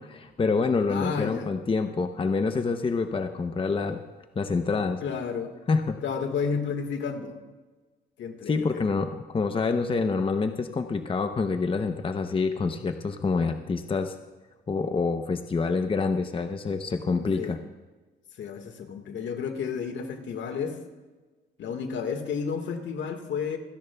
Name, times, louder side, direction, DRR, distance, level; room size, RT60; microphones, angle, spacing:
voice 1, 0.0-4.0 4.4-5.0 5.7-6.0 8.5-14.2 14.7-17.6, left 4 dB, 25° left, 7 dB, 0.7 m, -27 dB
voice 2, 0.9-1.5 5.0-5.5 6.0-7.4 8.2-8.8 17.2-17.6 18.4-20.8 21.6-23.6, left 6 dB, 70° left, 6 dB, 1.7 m, -31 dB
26.5 x 10.5 x 2.3 m, 1.2 s
cardioid pair, 90°, 20 cm